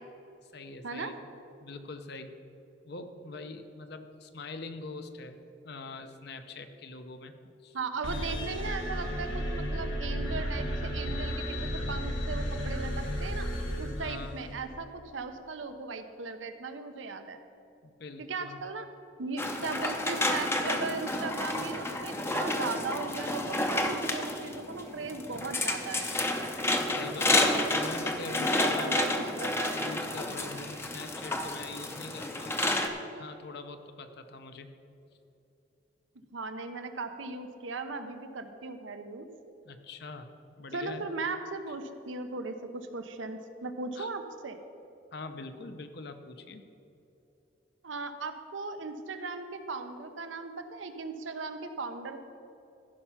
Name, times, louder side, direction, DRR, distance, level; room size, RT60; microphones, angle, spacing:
voice 1, 0.4-1.1 1.6-2.3 2.8-5.4 5.6-7.3 7.6-7.8 13.9-14.6 17.8-18.6 26.9-29.0 29.7-32.8 33.1-34.7 39.6-40.3 40.6-41.1 44.0-44.1 45.1-46.6, left 3 dB, 55° left, 8 dB, 0.8 m, -43 dB
voice 2, 7.7-13.5 13.8-17.4 18.2-18.9 19.2-26.2 28.4-29.8 36.3-39.3 40.7-44.6 47.8-52.2, right 3 dB, 80° right, 8 dB, 0.8 m, -37 dB
sound 1, 8.0-14.6, equal, 90° left, 1.8 m, -33 dB
sound 2, 19.4-32.9, left 2 dB, 15° left, 0.6 m, -30 dB
14.5 x 5.7 x 5.7 m, 2.9 s
head